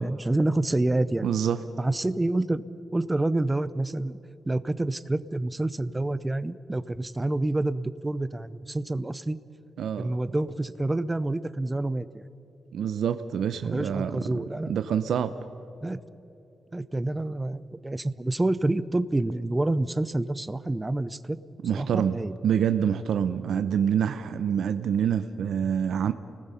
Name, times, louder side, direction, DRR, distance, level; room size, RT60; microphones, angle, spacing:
voice 1, 0.0-1.3 1.8-2.6 2.9-4.2 4.4-9.4 10.0-12.2 13.6-14.7 15.8-16.0 16.7-21.4 21.7-22.3, right 2 dB, 15° right, 15 dB, 0.5 m, -28 dB
voice 2, 1.2-1.6 9.8-10.1 12.7-14.1 14.7-15.3 21.6-26.1, right 8 dB, 85° right, 10 dB, 0.7 m, -26 dB
29.5 x 19.5 x 5.6 m, 2.9 s
wide cardioid pair, 175°, 0 cm